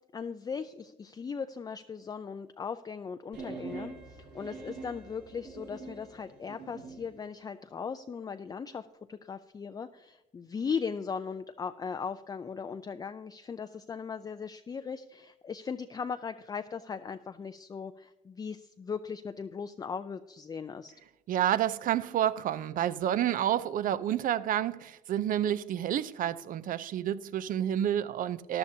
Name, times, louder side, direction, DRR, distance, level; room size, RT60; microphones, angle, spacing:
voice 1, 0.1-20.9, left 6 dB, 20° left, 0.4 m, -38 dB
sound 1, 3.3-7.1, right 4 dB, 75° right, 3.8 m, -44 dB
voice 2, 21.3-28.6, right 11 dB, 55° right, 0.5 m, -29 dB
14.0 x 11.0 x 2.7 m
cardioid pair, 110°, 17 cm